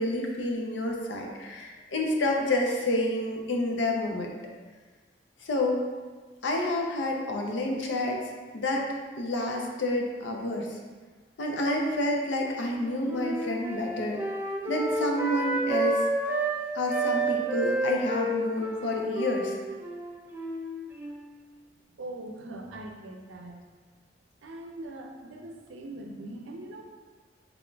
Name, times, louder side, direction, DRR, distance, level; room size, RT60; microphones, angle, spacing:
voice 1, 0.0-4.3 5.4-5.8 6.4-8.2 8.5-8.9 9.2-10.8 11.4-14.2 14.7-16.0 16.7-19.5, left 1 dB, 75° left, 1 dB, 0.5 m, -29 dB
Wind instrument woodwind instrument, 12.6-16.6 16.9-21.4, right 2 dB, 10° right, 0.3 m, -30 dB
voice 2, 22.0-23.6 24.4-26.8, right 1 dB, 90° right, 2 dB, 0.5 m, -41 dB
3.8 x 3.5 x 2.3 m, 1.4 s
head